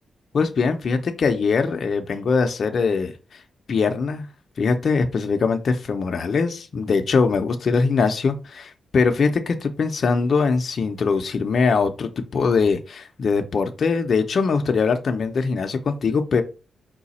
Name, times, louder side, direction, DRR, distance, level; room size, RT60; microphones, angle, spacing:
voice 1, 0.3-3.4 3.7-4.3 4.6-16.4, left 5 dB, 55° left, 6 dB, 0.5 m, -22 dB
4.8 x 2.2 x 4.1 m, 0.31 s
cardioid pair, 110°, 0 cm